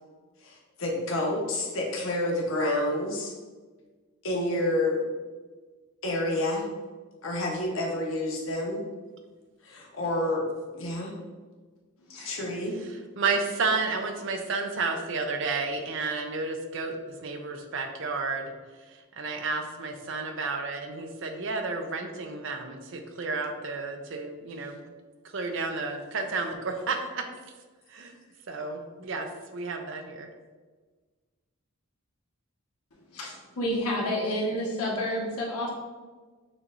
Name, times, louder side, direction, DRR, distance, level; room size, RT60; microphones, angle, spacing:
voice 1, 0.4-3.3 4.2-5.0 6.0-6.7 7.2-8.8 9.6-10.5 10.7-11.2 12.2-12.7, left 1 dB, 65° left, -1 dB, 0.9 m, -29 dB
voice 2, 13.2-17.0 17.2-18.5 18.9-24.8 25.3-27.2 27.9-28.1 28.5-30.3, right 4 dB, 55° right, 5 dB, 0.5 m, -31 dB
voice 3, 33.1-35.7, equal, 85° left, -3 dB, 1.2 m, -29 dB
6.2 x 3.1 x 2.5 m, 1.4 s
head